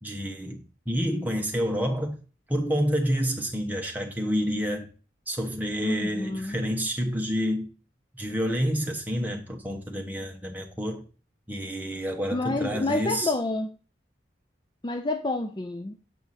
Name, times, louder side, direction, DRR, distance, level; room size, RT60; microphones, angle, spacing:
voice 1, 0.0-2.2 2.5-4.9 5.3-7.7 8.1-11.0 11.5-13.3, equal, 10° right, 1.0 m, -28 dB
voice 2, 5.8-6.6 12.3-13.7 14.8-16.0, left 2 dB, 25° left, 0.4 m, -29 dB
7.5 x 4.7 x 4.1 m
head